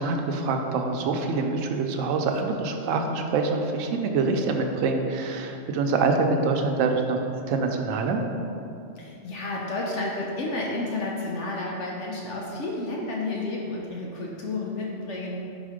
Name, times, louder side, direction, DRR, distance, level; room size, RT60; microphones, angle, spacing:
voice 1, 0.0-7.2 7.5-8.2, right 4 dB, 80° right, 4 dB, 1.0 m, -25 dB
voice 2, 9.0-15.4, left 2 dB, 70° left, -3 dB, 1.0 m, -31 dB
5.0 x 4.1 x 4.9 m, 2.7 s
omnidirectional pair, 1.3 m